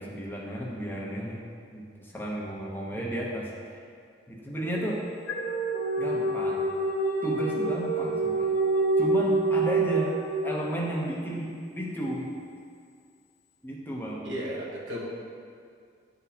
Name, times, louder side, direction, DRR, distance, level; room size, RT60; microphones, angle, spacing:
voice 1, 0.0-1.4 1.7-3.8 4.3-5.0 6.0-6.6 7.2-8.5 9.0-10.2 10.4-12.3 13.6-14.3, equal, 10° left, -4 dB, 0.8 m, -33 dB
sound 1, 4.6-11.0, right 2 dB, 65° left, 1.6 m, -27 dB
voice 2, 14.2-15.0, equal, 85° right, -4 dB, 1.3 m, -34 dB
10.5 x 4.1 x 2.8 m, 2.2 s
head